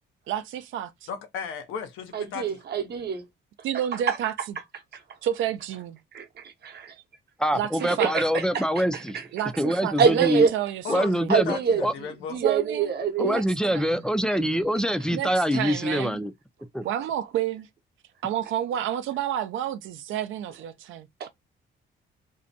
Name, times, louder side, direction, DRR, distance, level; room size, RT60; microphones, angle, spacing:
voice 1, 0.3-1.1 3.6-4.6 5.2-6.0 7.5-8.1 9.3-11.4 12.4-12.9 13.2-13.4 13.7-14.0 15.1-16.2 16.8-17.7 18.2-21.3, right 11 dB, 80° right, 0.4 m, -30 dB
voice 2, 1.1-2.6 10.8-12.4, left 6 dB, 85° left, 0.7 m, -34 dB
voice 3, 2.1-3.2 4.1-4.2 6.1-6.9 8.0-8.6 8.9-9.2 10.0-10.5 11.3-13.4 21.2-21.3, right 6 dB, 55° right, 0.8 m, -25 dB
voice 4, 7.4-9.2 9.6-10.4 10.9-11.9 13.2-16.3 16.7-16.8, equal, 5° left, 0.3 m, -25 dB
2.6 x 2.1 x 2.5 m
cardioid pair, 90°, 20 cm